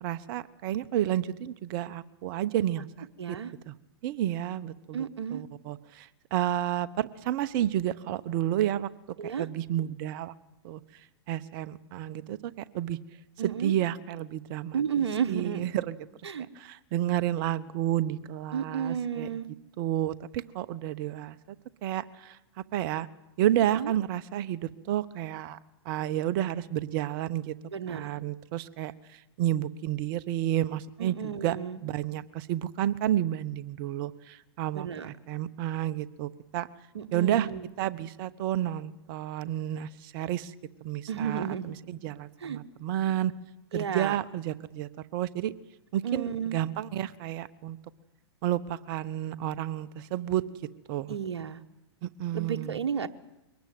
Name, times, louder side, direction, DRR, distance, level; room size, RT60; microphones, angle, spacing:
voice 1, 0.0-3.4 3.7-3.8 4.0-5.0 5.3-8.9 9.2-10.3 10.6-10.8 11.3-12.4 12.7-13.0 13.4-14.8 15.3-15.9 16.6-19.3 19.8-21.4 21.8-22.4 22.7-23.1 23.4-25.6 25.8-27.5 27.9-28.9 29.4-31.1 31.4-31.6 31.8-36.7 37.1-37.5 37.8-40.5 40.8-41.5 41.9-43.3 43.7-45.5 45.9-47.8 48.4-50.4 50.9-51.2 52.0-52.8, right 12 dB, 50° right, 15 dB, 1.1 m, -30 dB
voice 2, 3.2-3.5 4.9-5.4 9.2-9.5 13.4-13.7 14.7-15.6 16.2-16.5 18.5-19.5 23.7-23.9 27.7-28.1 31.0-31.8 34.7-35.1 36.9-37.7 41.1-41.7 42.4-42.6 43.7-44.2 46.0-46.6 51.1-51.6 52.3-53.1, right 7 dB, 75° right, 8 dB, 1.2 m, -32 dB
23.0 x 19.0 x 7.9 m, 0.94 s
hypercardioid pair, 105°, 14 cm